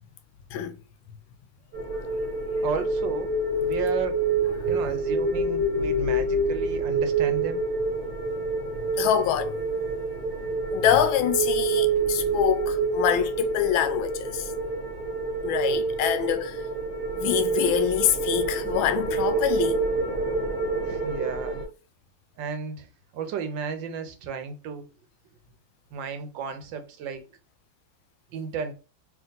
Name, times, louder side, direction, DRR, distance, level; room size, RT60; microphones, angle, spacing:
sound 1, 1.7-21.7, right 3 dB, 40° right, 1.1 m, -27 dB
voice 1, 2.6-3.3 3.6-4.2 4.7-7.6 7.9-8.0 20.8-21.6 22.4-22.9 23.1-24.9 25.9-27.2 28.3-28.7, right 6 dB, 75° right, 1.3 m, -33 dB
voice 2, 9.0-9.9 10.7-14.5 15.4-16.6 17.2-19.8, left 10 dB, 80° left, 1.4 m, -25 dB
3.4 x 2.9 x 3.9 m
omnidirectional pair, 2.2 m